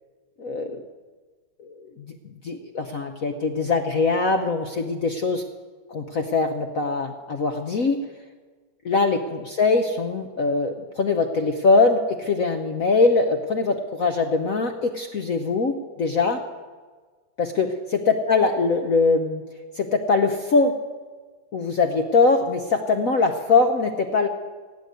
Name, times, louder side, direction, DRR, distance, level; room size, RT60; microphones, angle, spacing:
voice 1, 0.4-0.8 1.6-2.1 2.4-5.4 5.9-8.0 8.8-16.4 17.4-19.4 19.8-20.8 21.5-24.3, left 3 dB, 55° left, 6 dB, 1.0 m, -22 dB
17.0 x 8.1 x 9.6 m, 1.4 s
omnidirectional pair, 2.3 m